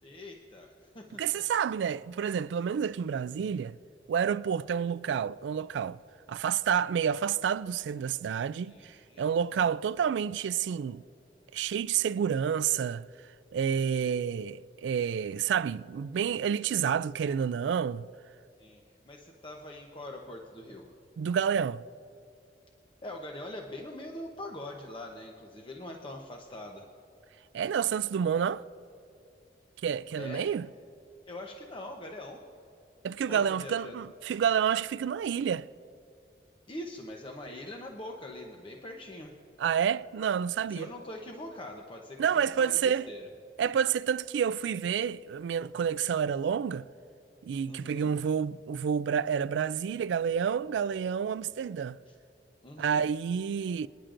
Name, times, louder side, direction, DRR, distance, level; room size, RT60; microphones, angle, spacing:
voice 1, 0.0-1.4 8.5-9.3 13.8-14.2 18.6-21.0 23.0-26.8 30.2-30.5 31.3-32.4 33.3-34.0 36.7-39.3 40.7-43.3 47.7-48.1 52.1-52.2 52.6-53.0, left 1 dB, 30° left, 0.8 m, -43 dB
voice 2, 1.2-3.8 4.1-6.0 6.3-11.0 11.5-13.0 13.5-18.1 21.2-21.8 27.5-28.6 29.8-30.7 33.0-35.7 39.6-40.9 42.2-43.1 43.6-46.9 47.4-52.0 52.8-53.9, right 7 dB, 85° right, 0.3 m, -29 dB
26.0 x 10.0 x 2.6 m
head